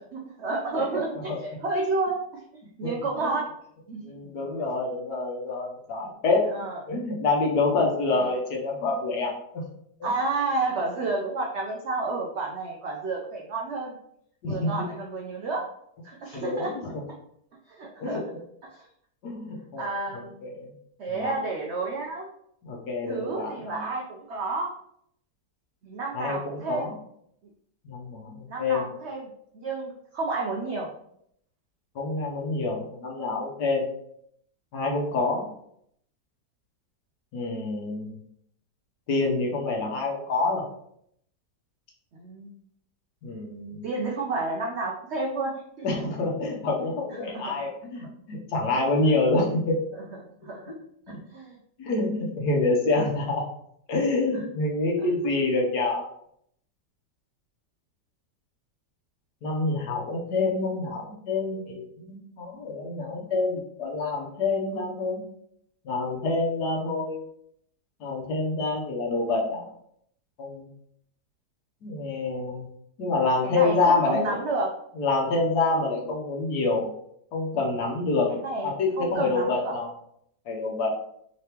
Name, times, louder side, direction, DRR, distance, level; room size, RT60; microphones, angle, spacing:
voice 1, 0.1-2.2 2.8-3.5 3.9-4.0 6.5-6.8 8.1-8.3 10.0-14.0 14.5-15.6 16.0-16.7 17.8-18.2 18.7-18.9 19.8-20.4 21.0-22.3 23.1-24.7 25.8-26.9 28.5-30.9 42.1-42.5 43.8-45.5 45.8-45.9 47.2-47.5 49.9-50.0 50.4-50.6 51.3-51.6 73.4-74.7 78.4-79.7, right 3 dB, 80° right, -1 dB, 0.6 m, -30 dB
voice 2, 4.0-6.5 6.9-9.3 10.0-10.1 14.4-14.9 16.3-16.9 18.0-18.2 19.2-19.9 20.1-20.7 21.1-21.4 22.6-23.8 26.1-26.9 27.8-28.3 28.6-28.8 31.9-33.9 34.7-35.5 37.3-38.1 39.1-40.6 43.2-43.8 45.8-49.8 51.1-51.2 51.8-53.4 53.9-56.1 59.4-65.2 65.8-67.2 68.0-69.7 70.4-70.7 71.8-72.6 73.0-74.2 75.0-76.9 77.3-78.4 78.6-79.9 80.5-80.9, left 3 dB, 70° left, -1 dB, 1.4 m, -27 dB
3.8 x 3.4 x 2.9 m, 0.71 s
omnidirectional pair, 1.9 m